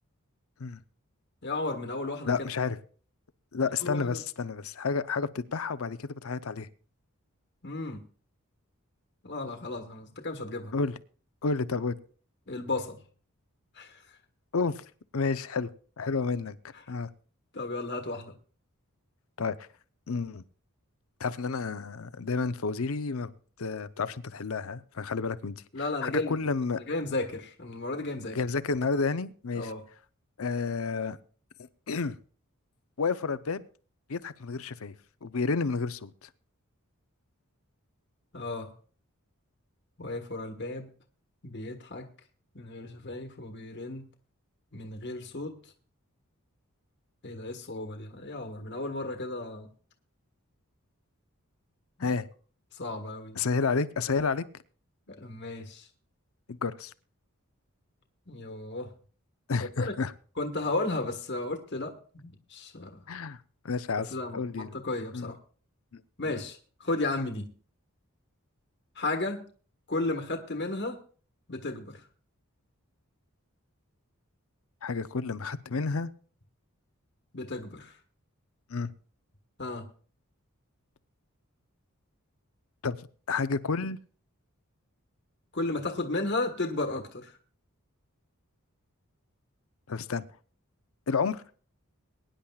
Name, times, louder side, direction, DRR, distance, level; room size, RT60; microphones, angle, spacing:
voice 1, 1.4-2.3 3.6-4.2 7.6-8.0 9.2-10.7 12.5-13.0 13.7-14.0 16.9-17.0 17.5-18.3 25.7-26.4 26.8-28.4 29.5-29.8 38.3-38.7 40.0-40.9 41.4-42.1 42.5-44.0 44.7-45.6 47.2-49.7 52.7-53.5 55.1-55.9 58.3-58.9 59.8-59.9 60.4-63.0 64.1-65.4 66.2-67.5 69.0-69.4 69.9-71.0 71.5-72.0 77.3-78.0 79.6-79.9 85.5-87.4, left 2 dB, 50° left, 5 dB, 1.4 m, -34 dB
voice 2, 2.2-2.8 3.5-6.7 10.7-10.9 11.4-12.0 14.5-14.8 15.1-15.7 16.0-16.6 16.9-17.1 19.4-19.6 20.1-20.4 21.2-23.3 23.6-25.6 26.0-26.8 28.3-29.7 30.4-31.2 31.6-32.2 33.0-33.6 34.1-34.9 35.2-36.3 52.0-52.3 53.4-54.4 56.5-56.9 59.5-60.1 63.1-63.4 63.6-64.8 65.1-65.3 65.9-66.0 66.3-66.4 74.8-76.1 78.7-78.9 82.8-84.0 89.9-90.2 91.1-91.4, left 4 dB, 70° left, 14 dB, 0.7 m, -30 dB
22.5 x 10.0 x 2.4 m, 0.41 s
head